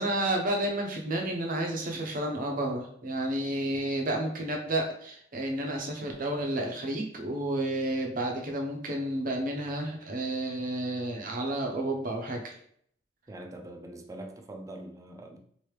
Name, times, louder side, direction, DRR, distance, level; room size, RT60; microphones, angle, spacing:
voice 1, 0.0-12.5, right 1 dB, 50° right, 0.7 m, -31 dB
voice 2, 13.3-15.4, right 1 dB, 20° right, 0.4 m, -43 dB
3.1 x 2.7 x 3.1 m
head